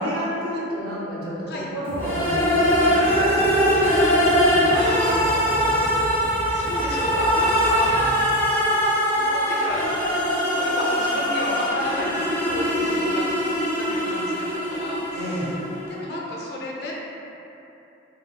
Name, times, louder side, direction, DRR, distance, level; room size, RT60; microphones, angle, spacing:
voice 1, 0.0-6.2 7.9-8.2 15.1-15.5, equal, 55° right, -8 dB, 0.7 m, -32 dB
sound 1, 1.8-8.2, right 1 dB, 30° right, 0.3 m, -35 dB
sound 2, 2.0-15.8, equal, 10° left, 0.6 m, -22 dB
voice 2, 4.7-6.2 6.5-8.0 9.2-9.8 10.5-13.3 13.7-15.4 15.9-16.9, left 1 dB, 60° left, -4 dB, 0.4 m, -32 dB
3.2 x 2.2 x 2.2 m, 3.0 s
head